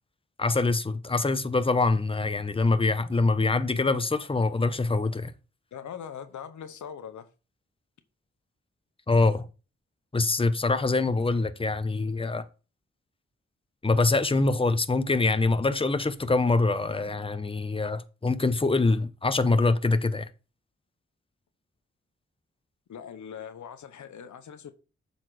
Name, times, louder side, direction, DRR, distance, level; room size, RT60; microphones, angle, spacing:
voice 1, 0.4-5.3 9.1-9.4 10.1-12.4 13.8-20.2, left 3 dB, 20° left, 0.8 m, -24 dB
voice 2, 5.7-7.3 22.9-24.7, left 8 dB, 80° left, 0.8 m, -41 dB
7.6 x 4.3 x 4.8 m
cardioid pair, 40°, 29 cm